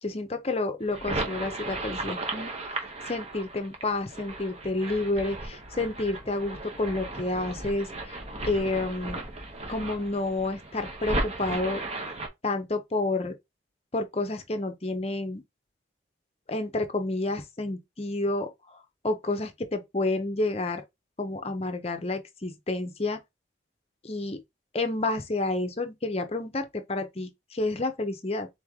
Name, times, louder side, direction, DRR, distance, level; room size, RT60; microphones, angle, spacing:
voice 1, 0.0-2.5 3.1-9.2 9.7-11.8 12.4-13.4 13.9-15.4 16.5-18.8 19.0-20.8 21.2-23.2 24.0-24.4 24.7-28.5, left 2 dB, 30° left, 0.7 m, -30 dB
sound 1, 0.8-12.3, right 2 dB, 35° right, 0.9 m, -35 dB
4.0 x 3.1 x 3.6 m
head